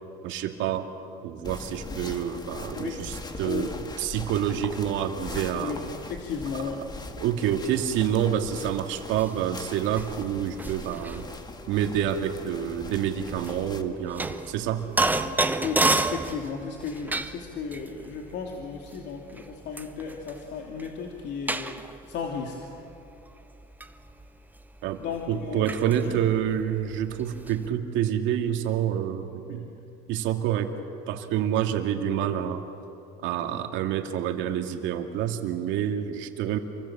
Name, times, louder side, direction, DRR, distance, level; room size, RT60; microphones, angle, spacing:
voice 1, 0.2-0.9 1.2-5.8 6.5-6.9 7.2-11.2 11.7-14.9 24.8-25.0 25.3-29.7 30.1-30.7 31.1-32.6 33.2-36.6, right 10 dB, 65° right, 4 dB, 2.5 m, -28 dB
sound 1, 1.4-13.8, left 3 dB, 20° left, 2.0 m, -41 dB
voice 2, 6.2-6.8 15.6-21.7 22.1-22.5 25.0-25.7 26.0-26.1, left 6 dB, 55° left, 1 dB, 2.9 m, -34 dB
sound 2, 9.0-27.7, right 2 dB, 10° right, 1.2 m, -32 dB
28.0 x 24.5 x 7.5 m, 2.8 s
supercardioid pair, 105°, 21 cm